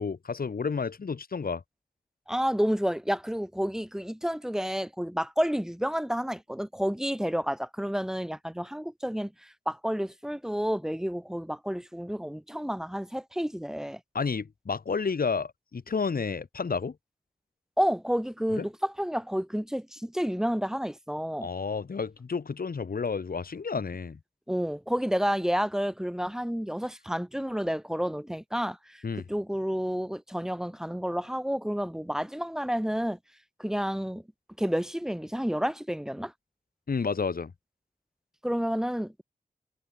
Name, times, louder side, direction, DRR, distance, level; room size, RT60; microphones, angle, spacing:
voice 1, 0.0-1.6 14.1-16.9 18.6-18.7 21.4-24.2 29.0-29.2 36.9-37.5, left 5 dB, 70° left, 6.3 m, -31 dB
voice 2, 2.3-14.0 17.8-21.5 24.5-33.2 33.6-34.2 34.6-36.3 38.4-39.2, equal, 5° right, 7.1 m, -30 dB
wide cardioid pair, 105°, 16 cm